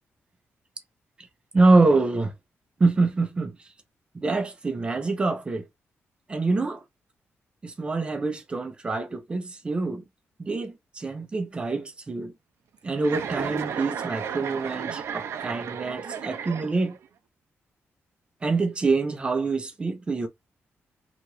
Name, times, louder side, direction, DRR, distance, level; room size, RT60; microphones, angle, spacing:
voice 1, 1.5-2.3 2.8-3.5 4.1-5.7 6.3-6.8 7.6-10.0 10.4-12.3 12.8-17.0 18.4-20.3, right 3 dB, 20° right, 0.6 m, -25 dB
Chuckle chortle, 13.0-17.1, right 7 dB, 65° right, 0.5 m, -33 dB
2.9 x 2.5 x 3.0 m
wide cardioid pair, 170°, 5 cm